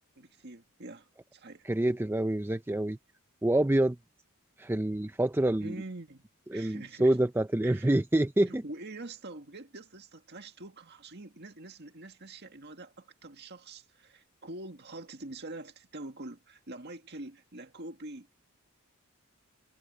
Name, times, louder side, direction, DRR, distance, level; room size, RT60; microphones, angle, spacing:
voice 1, 0.2-1.7 5.6-6.2 6.5-7.2 7.6-8.0 8.5-18.3, right 2 dB, 50° right, 1.9 m, -45 dB
voice 2, 1.7-3.0 3.4-4.0 4.6-5.7 6.5-8.6, right 1 dB, 10° right, 0.4 m, -27 dB
head